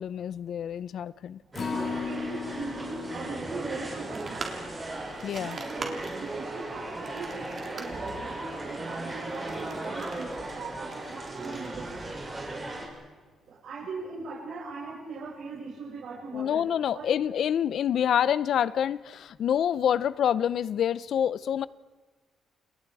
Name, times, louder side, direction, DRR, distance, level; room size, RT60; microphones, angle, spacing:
voice 1, 0.0-1.4 5.2-5.6 16.3-21.7, left 9 dB, 55° left, 0.7 m, -27 dB
Acoustic guitar, 1.5-7.9 8.3-8.4 8.8-8.9, left 5 dB, 35° left, 3.3 m, -39 dB
sound 1, 1.5-12.9, right 2 dB, 15° right, 7.0 m, -37 dB
voice 2, 1.7-4.4 5.3-12.0 13.5-16.6 16.9-17.2, right 4 dB, 50° right, 7.2 m, -40 dB
sound 2, 4.1-12.4, right 4 dB, 35° right, 3.7 m, -44 dB
29.5 x 29.0 x 4.9 m
cardioid pair, 175°, 0 cm